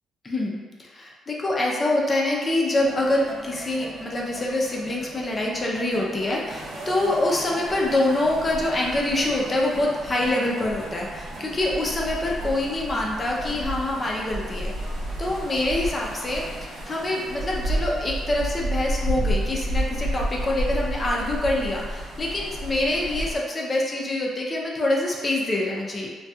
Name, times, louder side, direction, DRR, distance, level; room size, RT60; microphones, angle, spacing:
voice 1, 0.2-14.7 15.2-26.1, left 1 dB, 30° left, -2 dB, 0.5 m, -25 dB
sound 1, 2.8-16.5, right 2 dB, 40° right, 0.3 m, -41 dB
sound 2, 6.5-23.4, right 1 dB, 80° right, 0.7 m, -31 dB
2.6 x 2.2 x 2.3 m, 1.4 s
cardioid pair, 90°, 0 cm